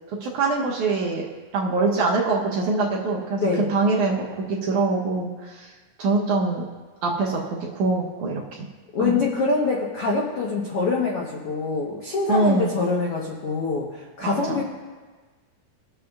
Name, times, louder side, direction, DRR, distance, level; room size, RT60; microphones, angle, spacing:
voice 1, 0.2-1.3 1.5-3.4 3.7-5.7 6.0-6.6 7.0-8.4 9.0-9.2 12.3-12.8 14.2-14.6, right 3 dB, 70° right, -2 dB, 2.0 m, -24 dB
voice 2, 8.9-14.6, left 3 dB, 80° left, -3 dB, 1.3 m, -25 dB
22.0 x 7.7 x 2.4 m, 1.4 s
omnidirectional pair, 4.3 m